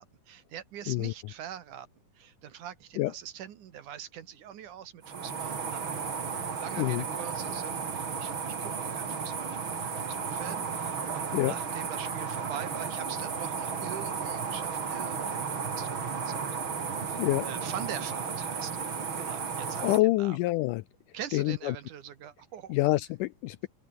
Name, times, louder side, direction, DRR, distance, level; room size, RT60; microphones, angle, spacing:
voice 1, 0.0-1.9 2.1-5.9 6.6-16.6 17.0-17.2 17.4-20.4 21.1-22.7, right 10 dB, 65° right, 2.8 m, -43 dB
sound 1, 5.0-20.0, right 6 dB, 35° right, 3.0 m, -34 dB
voice 2, 19.8-20.8 21.3-21.8 22.7-23.7, left 18 dB, 80° left, 1.9 m, -26 dB
open air
omnidirectional pair, 4.2 m